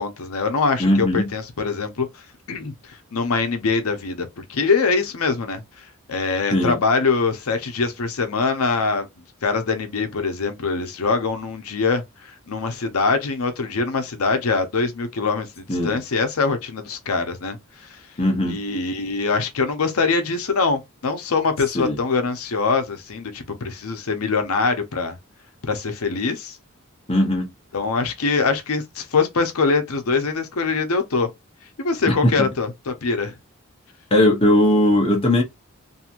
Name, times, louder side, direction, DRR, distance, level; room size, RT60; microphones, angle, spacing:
voice 1, 0.0-9.1 9.4-18.0 18.5-25.2 25.6-26.6 27.7-31.3 31.8-33.3, left 4 dB, 85° left, 0.7 m, -23 dB
voice 2, 0.8-1.3 6.5-6.8 15.7-16.0 18.2-18.6 21.7-22.0 27.1-27.5 32.1-32.5 34.1-35.4, left 1 dB, 25° left, 0.8 m, -19 dB
2.9 x 2.7 x 2.5 m
head